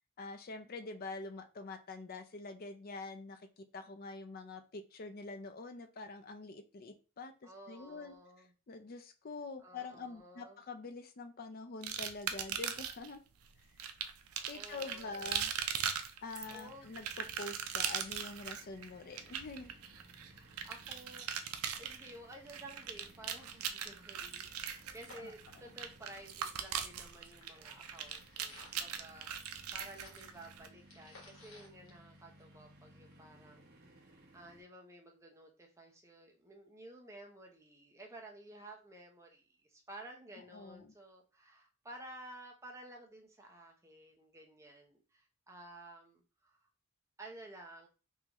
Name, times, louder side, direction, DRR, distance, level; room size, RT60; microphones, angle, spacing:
voice 1, 0.2-8.1 8.7-13.2 14.5-15.5 16.2-19.7 25.2-25.3 40.5-40.9, left 3 dB, 40° left, 8 dB, 0.4 m, -46 dB
voice 2, 7.4-8.5 9.6-10.6 14.5-15.2 16.1-17.0 20.3-34.0 34.3-46.7 47.2-47.9, right 1 dB, 15° right, 1 dB, 0.7 m, -53 dB
sound 1, 11.8-13.1 13.8-30.7, right 8 dB, 75° right, 0.5 m, -40 dB
sound 2, 16.4-34.6, right 1 dB, 45° right, 1.0 m, -61 dB
sound 3, 22.5-22.6 22.8-22.9 23.2-26.4 26.6-32.7 33.1-33.2, left 2 dB, 65° left, 1.2 m, -60 dB
3.7 x 2.7 x 2.9 m, 0.33 s
head